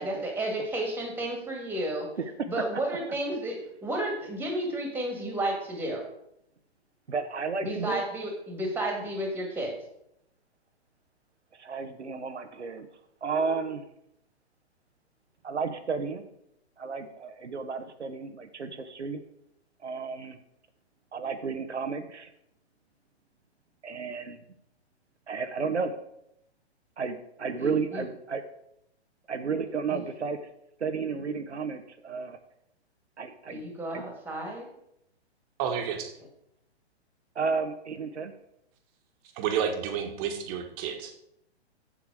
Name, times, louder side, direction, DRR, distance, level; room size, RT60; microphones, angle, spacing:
voice 1, 0.0-2.1 2.5-6.0 7.6-9.8 27.6-28.0 29.9-30.0 33.5-34.6, right 1 dB, 5° right, 2 dB, 1.8 m, -32 dB
voice 2, 2.2-2.5 7.1-8.0 11.5-12.9 13.2-13.8 15.4-16.3 16.8-19.2 19.8-20.4 21.1-22.3 23.8-24.4 25.3-25.9 27.0-28.4 29.3-30.4 30.8-32.4 33.2-33.6 33.9-34.0 37.3-38.3, right 5 dB, 90° right, 7 dB, 0.9 m, -32 dB
voice 3, 35.6-36.1 39.3-41.1, right 7 dB, 30° right, 5 dB, 1.4 m, -30 dB
7.4 x 7.2 x 4.8 m, 0.77 s
hypercardioid pair, 125°, 33 cm